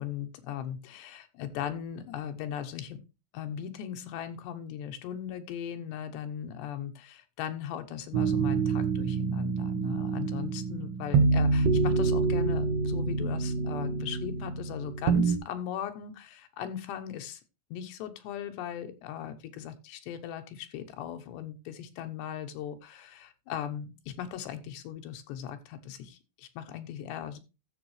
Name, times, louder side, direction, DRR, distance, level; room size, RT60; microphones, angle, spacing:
voice 1, 0.0-3.0 3.3-17.4 17.7-27.4, left 9 dB, 80° left, 7 dB, 3.0 m, -38 dB
sound 1, 8.1-15.4, right 4 dB, 75° right, 3.1 m, -27 dB
13.5 x 7.2 x 3.2 m, 0.27 s
omnidirectional pair, 5.1 m